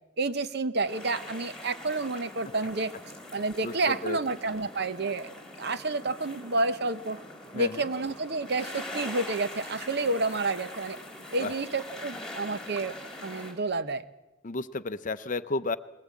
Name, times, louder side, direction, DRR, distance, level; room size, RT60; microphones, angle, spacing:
voice 1, 0.2-2.9 3.3-5.3 5.6-7.2 7.5-11.0 11.3-14.0, right 3 dB, 55° right, 12 dB, 0.9 m, -30 dB
sound 1, 0.8-13.5, left 1 dB, 5° left, 4.0 m, -43 dB
voice 2, 3.6-4.2 7.5-7.9 11.4-11.5 14.4-15.8, left 3 dB, 40° left, 12 dB, 0.6 m, -32 dB
20.5 x 19.0 x 8.4 m, 1.1 s
head